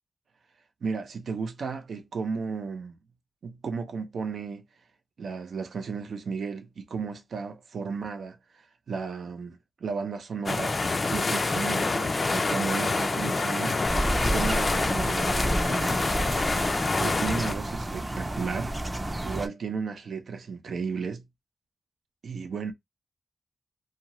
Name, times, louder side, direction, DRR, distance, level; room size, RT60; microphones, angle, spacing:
voice 1, 0.8-3.0 3.4-4.6 5.2-10.8 11.1-16.2 17.0-21.2 22.2-22.7, right 5 dB, 90° right, 0.6 m, -34 dB
sound 1, 10.5-17.5, left 3 dB, 45° left, 0.4 m, -27 dB
sound 2, 13.8-19.5, right 1 dB, 20° right, 0.5 m, -30 dB
2.7 x 2.4 x 3.0 m
cardioid pair, 70°, 0 cm